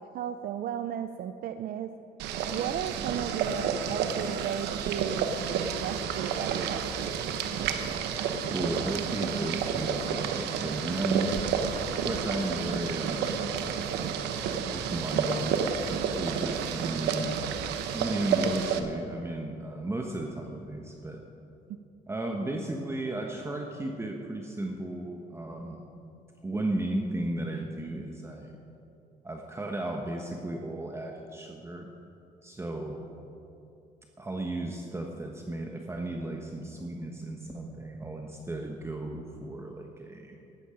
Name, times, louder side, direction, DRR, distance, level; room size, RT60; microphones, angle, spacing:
voice 1, 0.0-1.9 2.5-7.3, right 10 dB, 60° right, 9 dB, 0.6 m, -35 dB
Boiling, 2.2-18.8, right 7 dB, 85° right, 1.1 m, -30 dB
voice 2, 8.5-11.4 11.9-13.3 14.5-15.5 15.9-17.3 17.9-21.2 22.1-25.8 26.4-28.6 29.2-31.9 32.4-33.1 34.2-40.4, right 2 dB, 15° right, 2 dB, 1.2 m, -34 dB
14.5 x 12.5 x 5.1 m, 2.7 s
cardioid pair, 110°, 17 cm